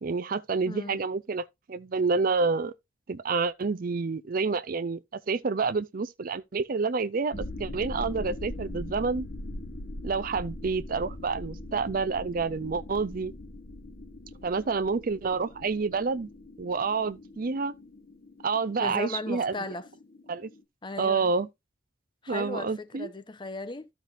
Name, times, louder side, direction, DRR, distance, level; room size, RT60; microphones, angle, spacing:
voice 1, 0.0-2.7 3.1-5.0 5.3-9.3 10.0-13.3 14.4-16.3 16.6-17.7 18.4-19.5 20.3-20.5 21.0-21.5 22.3-23.1, right 4 dB, 50° right, 0.5 m, -28 dB
voice 2, 0.7-1.0 18.8-19.9 20.8-21.3 22.2-23.9, left 3 dB, 25° left, 0.7 m, -36 dB
sound 1, 7.3-20.6, left 1 dB, 55° left, 0.9 m, -41 dB
13.5 x 5.9 x 2.5 m
head